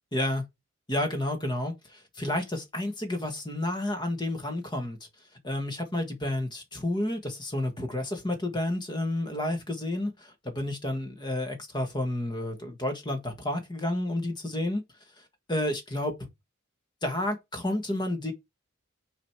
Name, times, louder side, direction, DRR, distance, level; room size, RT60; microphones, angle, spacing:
voice 1, 0.1-0.4 0.9-1.7 2.2-5.0 5.4-14.8 15.5-16.1 17.0-18.3, left 1 dB, 20° left, 1.5 m, -30 dB
6.2 x 4.0 x 4.7 m
head